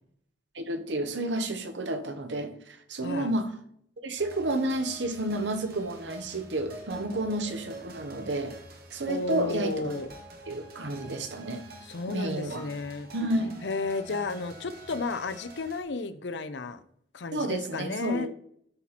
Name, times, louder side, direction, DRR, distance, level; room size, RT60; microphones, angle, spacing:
voice 1, 0.5-3.5 4.0-8.6 8.9-10.0 10.5-11.6 12.1-12.7 13.1-13.5 17.3-18.3, right 1 dB, 80° right, 1.1 m, -31 dB
sound 1, 4.2-15.8, right 1 dB, 60° right, 1.6 m, -47 dB
voice 2, 9.1-10.1 11.9-13.1 13.6-16.8 17.1-18.3, left 3 dB, 75° left, 0.7 m, -33 dB
12.5 x 4.3 x 4.2 m
head